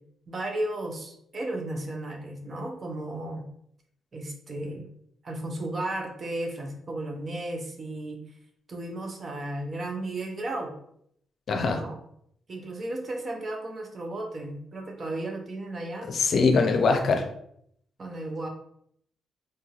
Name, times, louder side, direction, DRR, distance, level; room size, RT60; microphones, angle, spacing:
voice 1, 0.3-3.5 4.1-4.9 5.2-8.2 8.7-10.7 11.7-12.0 12.5-16.1 18.0-18.5, right 1 dB, 45° right, 2 dB, 0.8 m, -34 dB
voice 2, 11.5-11.8 16.0-17.3, left 4 dB, 60° left, 4 dB, 0.5 m, -22 dB
3.9 x 2.6 x 2.4 m, 0.70 s
hypercardioid pair, 45°, 0 cm